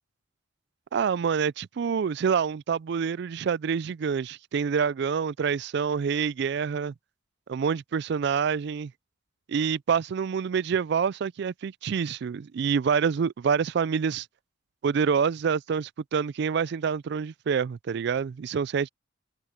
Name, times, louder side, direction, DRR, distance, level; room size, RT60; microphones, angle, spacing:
voice 1, 0.9-6.9 7.5-8.9 9.5-14.3 14.8-18.9, right 6 dB, 55° right, 0.3 m, -27 dB
head